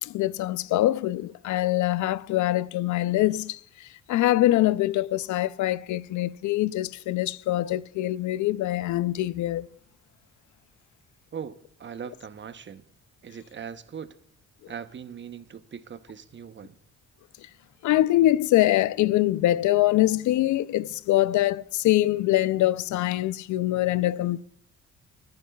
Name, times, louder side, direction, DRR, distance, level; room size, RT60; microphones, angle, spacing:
voice 1, 0.0-9.7 17.8-24.4, left 15 dB, 75° left, 0.5 m, -24 dB
voice 2, 11.3-12.8 13.2-14.2 14.7-16.8, right 7 dB, 40° right, 0.9 m, -40 dB
21.5 x 10.5 x 2.3 m
cardioid pair, 90°, 30 cm